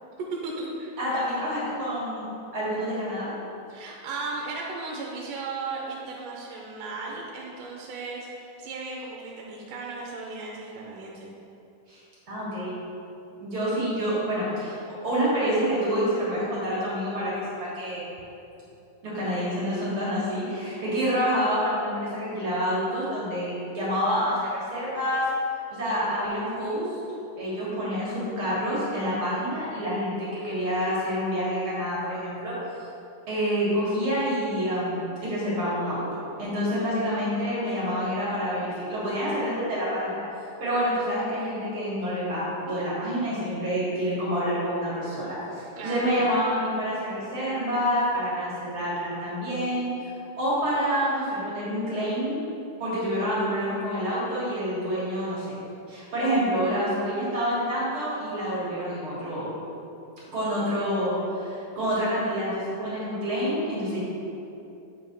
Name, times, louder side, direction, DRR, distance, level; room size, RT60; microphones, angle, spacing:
voice 1, 0.3-1.0 3.7-11.3 45.8-46.3, right 3 dB, 85° right, -2 dB, 2.3 m, -36 dB
voice 2, 1.0-2.2 2.5-3.3 11.9-12.0 12.3-12.8 13.4-14.8 15.0-17.3 17.6-18.0 19.0-25.2 25.7-26.9 27.4-32.6 33.3-36.0 36.4-40.2 40.6-52.4 52.8-55.5 55.9-59.5 60.3-64.0, equal, 50° right, -8 dB, 2.0 m, -27 dB
8.1 x 3.5 x 5.2 m, 2.8 s
omnidirectional pair, 3.8 m